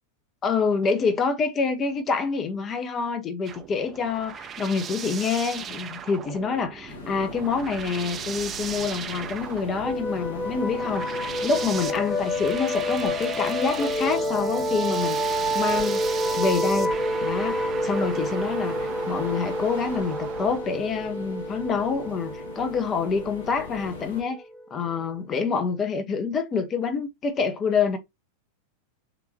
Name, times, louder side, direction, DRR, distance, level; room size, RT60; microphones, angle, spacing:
voice 1, 0.4-16.1 16.4-17.0 17.2-24.4 24.7-28.0, left 5 dB, 25° left, 0.7 m, -27 dB
sound 1, 3.5-20.6, right 7 dB, 25° right, 0.6 m, -38 dB
sound 2, 6.9-24.2, left 4 dB, 65° left, 1.2 m, -41 dB
sound 3, 9.8-25.2, equal, ahead, 1.1 m, -29 dB
6.7 x 2.5 x 2.6 m
figure-of-eight pair, 90°, 0 cm